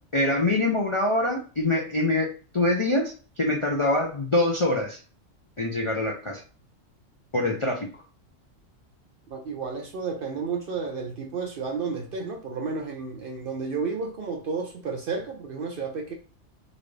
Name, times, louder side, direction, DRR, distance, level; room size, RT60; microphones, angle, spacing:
voice 1, 0.1-2.3 2.5-5.0 5.6-6.4 7.3-8.0, left 2 dB, 50° left, 0.3 m, -24 dB
voice 2, 9.3-16.1, right 4 dB, 60° right, 0.6 m, -32 dB
3.8 x 2.5 x 3.2 m
omnidirectional pair, 1.4 m